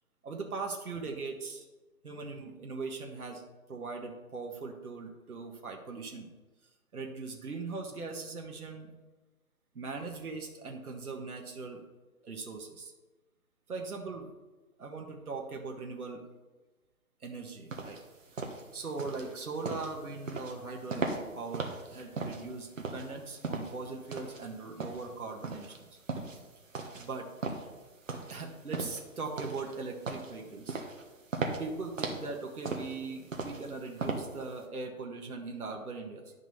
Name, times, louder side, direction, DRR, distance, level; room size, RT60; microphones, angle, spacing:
voice 1, 0.2-1.7 2.0-3.4 3.7-6.3 6.9-8.9 9.7-11.8 12.2-12.9 13.7-14.3 14.8-16.2 17.2-18.0 18.7-25.9 26.9-27.3 28.3-30.8 31.6-36.3, right 4 dB, 80° right, 1 dB, 1.6 m, -40 dB
sound 1, 17.7-34.6, right 3 dB, 60° right, 1.4 m, -38 dB
11.0 x 6.0 x 4.2 m, 1.2 s
hypercardioid pair, 170°, 44 cm